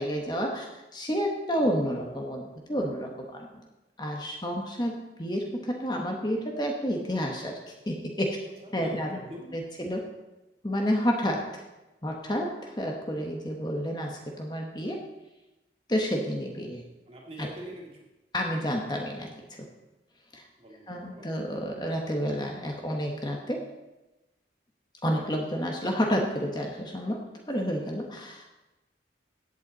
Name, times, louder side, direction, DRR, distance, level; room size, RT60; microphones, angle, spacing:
voice 1, 0.0-3.6 4.0-8.4 8.7-9.2 9.5-10.1 10.6-11.6 12.0-15.0 15.9-16.8 17.4-17.5 18.3-19.7 20.3-20.4 20.9-23.6 25.0-28.4, equal, 25° left, 1 dB, 1.2 m, -30 dB
voice 2, 8.6-9.6 16.2-16.3 17.1-18.1 20.6-21.3, right 1 dB, 35° right, -2 dB, 2.4 m, -43 dB
16.0 x 8.2 x 4.1 m, 1.0 s
head